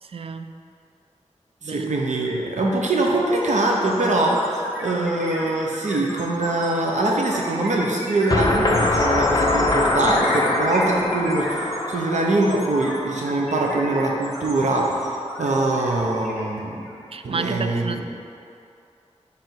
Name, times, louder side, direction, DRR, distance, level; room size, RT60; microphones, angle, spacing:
voice 1, 0.0-0.5 1.6-1.9 11.9-12.1 15.4-15.6 17.1-18.1, right 5 dB, 50° right, 8 dB, 0.4 m, -31 dB
voice 2, 1.6-16.8 17.2-17.9, right 2 dB, 80° right, -1 dB, 0.9 m, -23 dB
sound 1, 2.2-2.4 2.7-17.0, equal, ahead, 1.6 m, -33 dB
sound 2, 8.3-13.2, left 2 dB, 35° left, 0.7 m, -23 dB
10.5 x 3.5 x 4.6 m, 2.5 s
wide cardioid pair, 85°, 12 cm